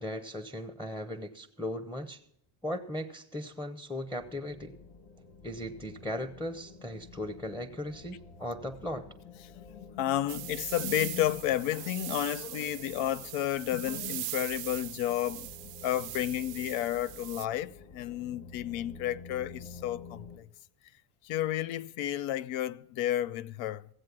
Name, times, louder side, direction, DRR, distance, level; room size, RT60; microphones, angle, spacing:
voice 1, 0.0-2.2 2.6-4.8 5.4-9.1, left 1 dB, 5° left, 0.6 m, -37 dB
sound 1, 4.2-20.4, left 4 dB, 45° left, 1.7 m, -51 dB
voice 2, 9.5-15.5 15.8-20.5 21.2-23.9, left 13 dB, 80° left, 0.6 m, -32 dB
sound 2, 10.3-17.5, right 20 dB, 65° right, 0.5 m, -41 dB
16.0 x 7.7 x 5.9 m
supercardioid pair, 100°, 47 cm